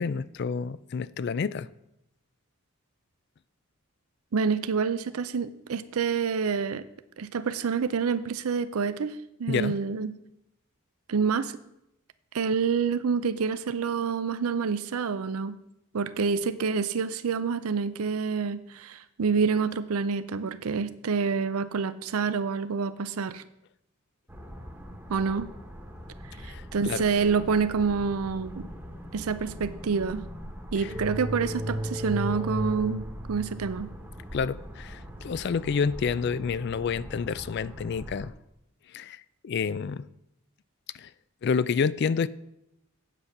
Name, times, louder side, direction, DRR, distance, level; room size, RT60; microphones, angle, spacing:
voice 1, 0.0-1.7 9.5-9.8 26.4-27.0 30.8-30.9 34.3-38.3 38.9-40.1 41.0-41.1 41.4-42.3, left 5 dB, 50° left, 0.3 m, -29 dB
voice 2, 4.3-6.8 7.2-10.1 11.1-11.6 12.3-15.6 15.9-23.4 25.1-25.5 26.4-28.7 29.1-30.3 30.7-33.9, right 5 dB, 80° right, 0.5 m, -27 dB
sound 1, 24.3-38.3, right 1 dB, 10° right, 1.2 m, -38 dB
8.2 x 8.0 x 5.9 m
head